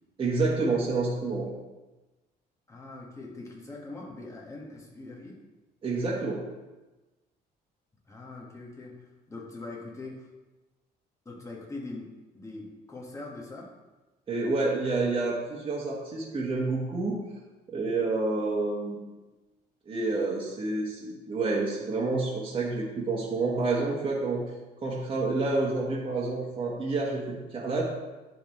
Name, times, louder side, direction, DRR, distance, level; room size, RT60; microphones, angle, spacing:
voice 1, 0.2-1.5 5.8-6.4 14.3-17.2 17.7-19.0 19.8-24.4 24.8-27.8, right 3 dB, 30° right, -5 dB, 1.5 m, -28 dB
voice 2, 2.7-5.4 8.1-10.3 11.3-12.1 12.3-13.7, left 2 dB, 20° left, -2 dB, 1.6 m, -42 dB
11.5 x 3.9 x 3.2 m, 1.1 s
cardioid pair, 110°, 17 cm